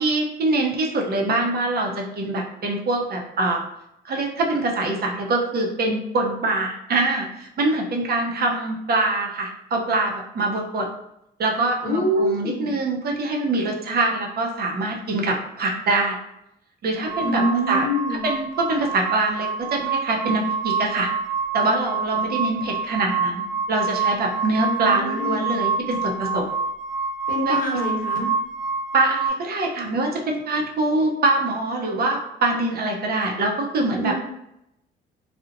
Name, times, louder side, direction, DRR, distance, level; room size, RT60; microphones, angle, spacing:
voice 1, 0.0-3.6 4.0-10.9 11.4-16.2 16.8-21.1 21.5-26.4 27.5-27.6 28.9-34.1, right 2 dB, 50° right, 0 dB, 0.6 m, -24 dB
voice 2, 11.8-12.7 17.2-18.2 24.6-25.5 27.3-28.3 33.9-34.1, equal, 45° left, -1 dB, 0.8 m, -25 dB
sound 1, 17.1-29.3, right 5 dB, 5° right, 0.7 m, -27 dB
2.8 x 2.0 x 2.5 m, 0.81 s
cardioid pair, 90°, 20 cm